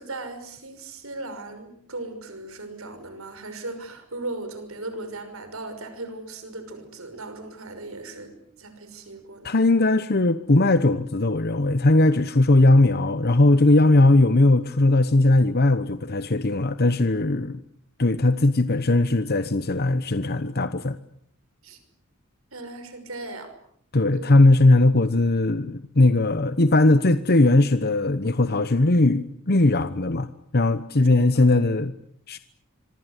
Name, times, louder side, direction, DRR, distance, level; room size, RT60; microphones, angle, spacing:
voice 1, 0.0-9.6 21.6-21.8 22.5-23.6 24.1-24.5 31.3-31.5, right 2 dB, 70° right, 9 dB, 6.0 m, -37 dB
voice 2, 9.4-17.6 18.0-21.0 23.9-30.3 30.5-31.9 32.3-32.4, left 2 dB, 50° left, 12 dB, 1.0 m, -19 dB
26.0 x 24.5 x 8.2 m, 0.67 s
head